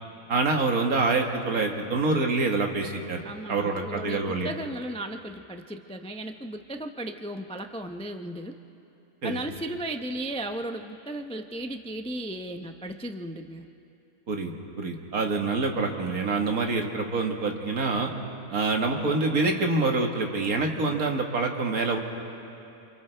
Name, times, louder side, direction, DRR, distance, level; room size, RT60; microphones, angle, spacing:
voice 1, 0.3-3.2 3.5-4.5 9.2-9.4 14.3-18.1 18.5-22.0, right 3 dB, 80° right, 2 dB, 2.1 m, -26 dB
voice 2, 3.2-8.5 9.2-13.6, right 1 dB, 10° left, 5 dB, 0.3 m, -35 dB
28.5 x 27.5 x 3.4 m, 2.8 s
omnidirectional pair, 1.5 m